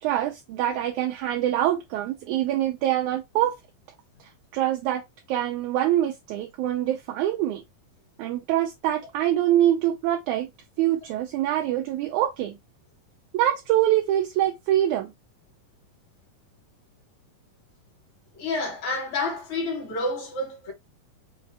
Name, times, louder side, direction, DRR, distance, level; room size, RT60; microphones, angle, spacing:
voice 1, 0.0-3.5 4.5-5.0 5.3-7.6 8.2-10.5 10.8-12.6 13.3-15.1, right 12 dB, 80° right, 1.8 m, -24 dB
voice 2, 18.4-20.7, left 2 dB, 60° left, 2.8 m, -29 dB
5.8 x 2.7 x 3.3 m
omnidirectional pair, 4.0 m